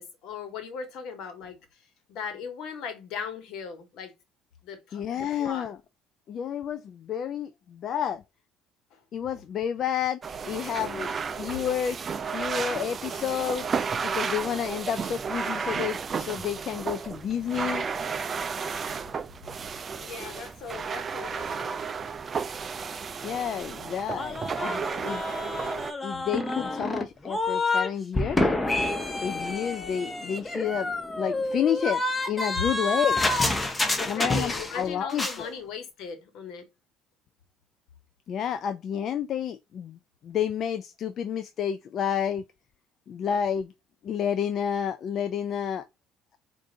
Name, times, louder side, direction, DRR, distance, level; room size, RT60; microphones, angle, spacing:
voice 1, 0.0-1.6 2.1-4.1 4.6-5.7 8.9-9.0 20.0-21.8 34.0-36.7, left 6 dB, 65° left, 1.3 m, -38 dB
voice 2, 4.9-5.8 6.3-8.2 9.1-12.0 12.2-13.7 14.0-17.9 23.2-25.5 26.0-28.5 29.2-30.9 31.2-32.0 32.3-33.2 34.1-35.5 38.3-40.0 40.2-42.4 43.1-43.7 44.0-45.8, left 8 dB, 50° left, 0.3 m, -30 dB
sound 1, 10.2-25.9, right 5 dB, 35° right, 0.4 m, -33 dB
sound 2, 24.2-27.9 28.1-34.8 35.1-35.4, left 2 dB, 15° left, 0.8 m, -28 dB
4.6 x 2.6 x 2.6 m
supercardioid pair, 95°, 0 cm